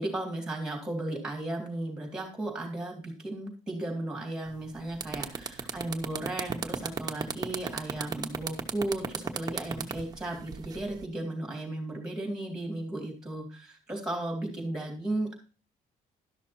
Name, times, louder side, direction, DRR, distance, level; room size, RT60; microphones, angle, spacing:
voice 1, 0.0-15.4, right 1 dB, 5° right, 1 dB, 3.2 m, -35 dB
sound 1, 4.5-4.6 4.9-11.0, right 6 dB, 25° right, 0.9 m, -34 dB
12.0 x 6.2 x 4.3 m, 0.37 s
cardioid pair, 170°, 15 cm